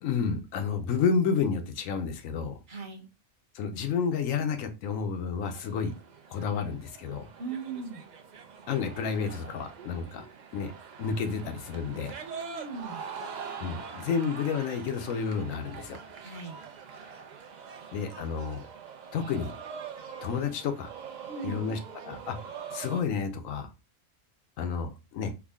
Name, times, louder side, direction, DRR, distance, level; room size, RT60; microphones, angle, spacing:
voice 1, 0.0-2.6 3.5-5.9 6.3-7.3 8.7-10.2 10.5-10.7 11.0-12.1 13.6-16.0 17.9-18.6 19.1-19.5 20.2-20.9 21.4-21.8 22.0-22.4 22.7-23.7 24.6-25.3, left 6 dB, 85° left, 7 dB, 1.0 m, -30 dB
voice 2, 2.7-3.1 7.4-8.0 12.2-13.0 16.2-16.6 21.3-21.6, right 4 dB, 45° right, 1 dB, 1.0 m, -38 dB
sound 1, 5.4-23.0, right 6 dB, 65° right, 0.4 m, -44 dB
3.5 x 2.2 x 3.4 m, 0.27 s
omnidirectional pair, 1.3 m